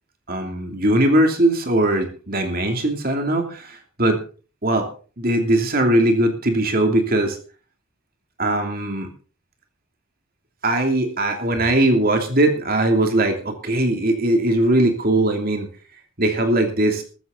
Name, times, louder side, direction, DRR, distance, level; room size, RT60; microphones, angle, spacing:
voice 1, 0.3-4.2 4.6-4.9 5.2-7.4 8.4-9.1 10.6-15.7 16.2-17.0, right 1 dB, 45° right, 4 dB, 2.9 m, -20 dB
14.5 x 14.0 x 4.0 m, 0.37 s
head